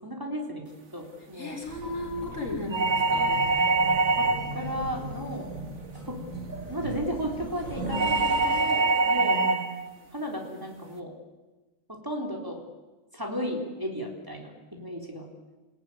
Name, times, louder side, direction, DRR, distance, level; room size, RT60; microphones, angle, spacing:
voice 1, 0.0-1.6 4.2-4.3 4.5-5.5 6.1-6.2 6.7-9.4 10.1-11.1 11.9-12.6 13.1-15.3, equal, 15° right, 0 dB, 3.9 m, -34 dB
voice 2, 1.3-3.7 9.2-9.7, left 1 dB, 70° left, 0 dB, 6.2 m, -36 dB
sound 1, 1.6-9.1, right 2 dB, 85° right, 5.5 m, -38 dB
sound 2, 2.7-4.6 7.9-9.7, right 3 dB, 60° right, 2.0 m, -24 dB
28.0 x 17.0 x 9.8 m, 1.2 s
omnidirectional pair, 1.4 m